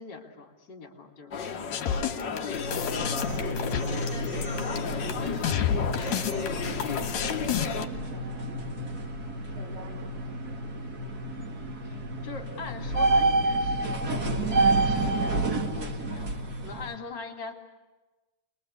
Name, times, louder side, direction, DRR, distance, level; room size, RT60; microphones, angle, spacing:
voice 1, 0.0-2.4 2.6-3.3 3.8-4.4 4.7-5.8 11.8-17.5, left 4 dB, 30° left, 1 dB, 3.6 m, -43 dB
sound 1, 1.3-7.9, left 6 dB, 90° left, 0.9 m, -34 dB
sound 2, 1.7-7.8, left 9 dB, 60° left, 2.5 m, -30 dB
sound 3, 2.5-16.9, right 2 dB, 35° right, 1.6 m, -29 dB
voice 2, 3.3-4.0 5.0-6.9 7.5-8.9 9.5-10.7, right 2 dB, 80° right, -5 dB, 6.0 m, -46 dB
29.0 x 22.5 x 8.4 m, 1.2 s
omnidirectional pair, 4.0 m